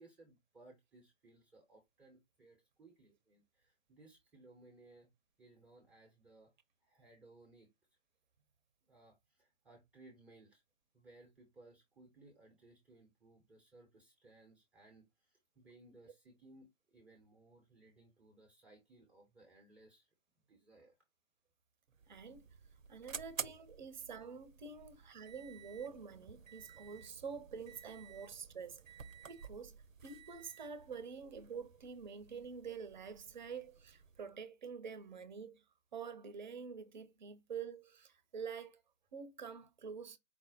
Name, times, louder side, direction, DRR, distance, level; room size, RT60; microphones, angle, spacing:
voice 1, 0.0-5.1 5.4-6.5 6.8-7.7 8.9-10.6 10.9-20.1 20.5-20.9 23.8-23.9, right 2 dB, 5° right, 0.7 m, -62 dB
sound 1, 21.9-34.3, right 6 dB, 90° right, 0.6 m, -52 dB
voice 2, 22.1-22.4 22.9-28.8 29.3-35.6 35.9-38.8 39.1-40.2, right 6 dB, 35° right, 0.7 m, -47 dB
4.7 x 2.0 x 4.0 m
figure-of-eight pair, 140°, 38 cm